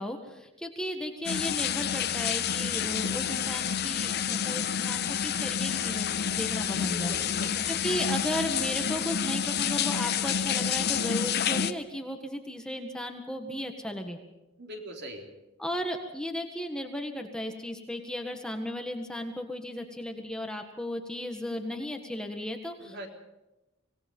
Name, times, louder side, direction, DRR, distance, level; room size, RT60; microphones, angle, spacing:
voice 1, 0.0-7.1 7.7-14.2 15.6-23.1, equal, 5° left, 3 dB, 1.7 m, -35 dB
sound 1, 1.2-11.7, left 8 dB, 55° left, 0.8 m, -29 dB
voice 2, 6.7-7.6 14.6-15.3 22.8-23.1, equal, 55° right, 2 dB, 3.6 m, -42 dB
25.5 x 18.5 x 5.5 m, 0.97 s
head